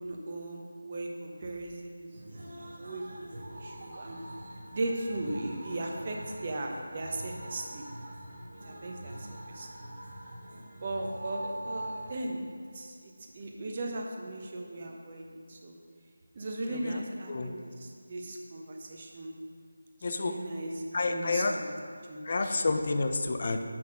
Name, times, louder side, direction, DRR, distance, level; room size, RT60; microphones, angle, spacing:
voice 1, 0.0-4.2 4.7-7.9 8.6-9.9 10.8-15.7 16.3-19.3 20.0-21.8 22.1-22.5, right 2 dB, 35° right, 1 dB, 1.0 m, -38 dB
sound 1, 2.1-12.1, right 1 dB, 50° right, 1.4 m, -43 dB
voice 2, 16.7-17.0 17.3-17.5 20.0-20.3 20.9-21.5 22.2-23.6, left 3 dB, 40° left, 6 dB, 0.6 m, -29 dB
6.1 x 5.7 x 6.3 m, 2.2 s
figure-of-eight pair, 160°, 0 cm